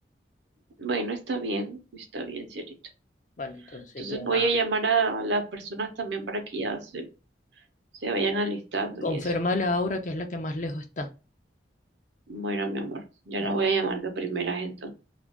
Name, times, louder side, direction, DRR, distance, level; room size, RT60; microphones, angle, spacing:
voice 1, 0.8-2.7 4.0-7.0 8.0-9.2 12.3-14.9, right 3 dB, 75° right, 5 dB, 0.7 m, -29 dB
voice 2, 3.4-4.5 9.0-11.1 13.4-13.6, left 2 dB, 40° left, 5 dB, 0.5 m, -30 dB
2.4 x 2.2 x 3.4 m, 0.31 s
head